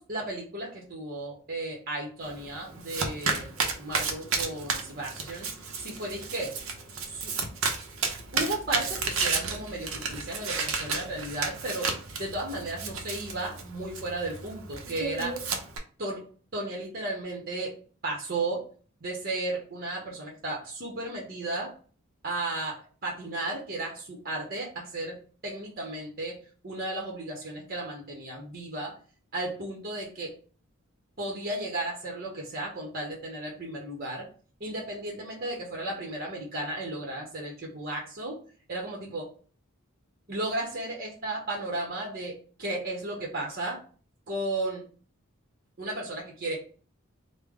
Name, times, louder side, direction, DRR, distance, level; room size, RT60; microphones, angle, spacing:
voice 1, 0.0-5.5 5.8-6.5 7.0-7.3 8.3-11.9 12.2-15.4 16.0-16.2 16.5-17.7 18.0-18.6 19.0-21.7 22.2-25.2 25.4-26.4 26.6-28.9 29.3-30.3 31.2-34.3 34.6-38.4 38.7-39.3 40.3-43.8 44.3-44.8 45.8-46.6, right 2 dB, 45° right, -2 dB, 0.9 m, -34 dB
Domestic sounds home sounds, 2.2-15.8, right 4 dB, 75° right, 0.7 m, -33 dB
3.3 x 2.1 x 3.7 m, 0.40 s
head